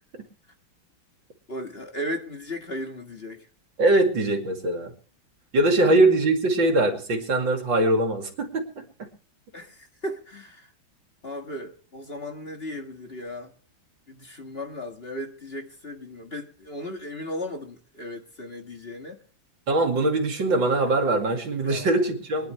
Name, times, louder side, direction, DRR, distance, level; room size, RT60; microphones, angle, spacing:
voice 1, 1.5-3.5 5.8-6.0 9.5-10.7 11.2-13.5 14.1-19.2 21.6-21.9, left 1 dB, 30° left, 1.8 m, -36 dB
voice 2, 3.8-4.9 5.5-8.8 19.7-22.5, right 2 dB, 70° right, 3.1 m, -22 dB
24.0 x 11.0 x 3.3 m
omnidirectional pair, 2.1 m